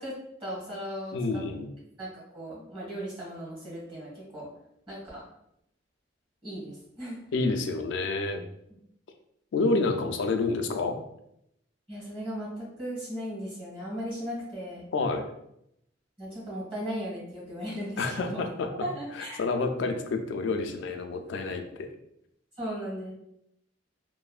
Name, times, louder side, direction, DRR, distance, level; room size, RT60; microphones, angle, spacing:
voice 1, 0.0-1.4 2.0-4.5 4.9-5.2 6.4-7.2 11.9-14.9 16.2-18.4 18.8-19.4 22.6-23.1, equal, 30° right, -5 dB, 1.4 m, -37 dB
voice 2, 1.1-1.7 7.3-8.4 9.5-10.9 14.9-15.2 18.0-18.9 19.2-21.9, left 3 dB, 65° left, 6 dB, 0.3 m, -29 dB
3.1 x 2.1 x 2.3 m, 0.78 s
head